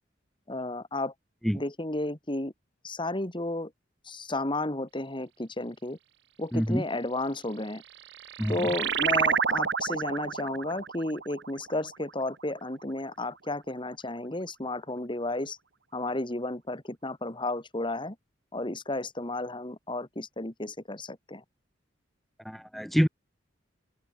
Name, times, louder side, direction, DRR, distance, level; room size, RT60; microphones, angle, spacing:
voice 1, 0.5-1.1 1.5-2.5 2.8-3.7 4.0-6.0 6.4-7.8 8.5-15.6 15.9-18.2 18.5-21.4, left 2 dB, 25° left, 2.5 m, -33 dB
voice 2, 6.5-6.8 8.4-8.7 22.4-23.1, equal, ahead, 2.2 m, -26 dB
sound 1, 7.8-12.8, right 6 dB, 65° right, 1.3 m, -30 dB
open air
head